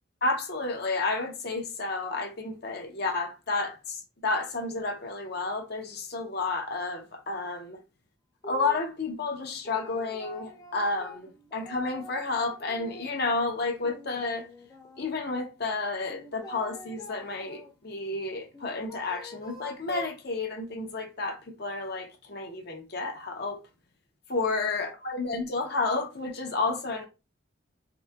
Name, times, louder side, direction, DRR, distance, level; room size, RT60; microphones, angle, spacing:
voice 1, 0.2-7.8 8.4-14.5 15.0-23.6 24.3-27.1, left 3 dB, 55° left, 0.8 m, -31 dB
sound 1, 8.4-8.9 9.4-13.4 13.8-15.4 16.1-17.7 18.5-20.2, left 2 dB, 20° left, 0.5 m, -46 dB
3.9 x 2.7 x 2.3 m
head